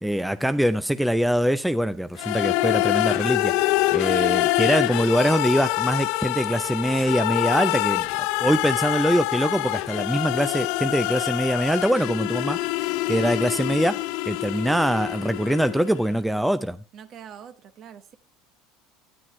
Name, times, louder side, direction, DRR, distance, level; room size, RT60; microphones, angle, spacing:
voice 1, 0.0-8.1 8.4-16.8, equal, 5° right, 0.5 m, -23 dB
sound 1, 2.2-16.0, left 18 dB, 70° left, 0.4 m, -25 dB
voice 2, 16.9-18.2, right 8 dB, 50° right, 1.1 m, -43 dB
9.9 x 9.1 x 3.2 m
hypercardioid pair, 90°, 0 cm